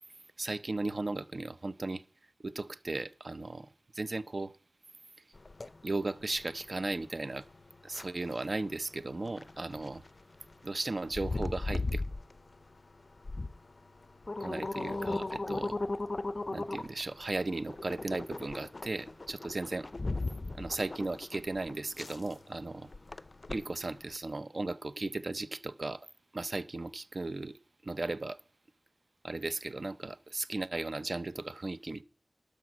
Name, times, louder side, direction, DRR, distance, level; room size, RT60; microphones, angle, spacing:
voice 1, 0.4-2.0 2.4-4.5 5.8-7.5 7.8-10.0 10.6-12.0 14.4-15.8 16.5-19.9 20.5-22.9 23.5-26.1 26.3-27.6 27.8-28.4 29.2-32.0, right 2 dB, 45° right, 0.6 m, -36 dB
sound 1, 5.3-24.2, left 2 dB, 40° left, 0.5 m, -38 dB
12.5 x 5.1 x 8.3 m
wide cardioid pair, 95°, 0 cm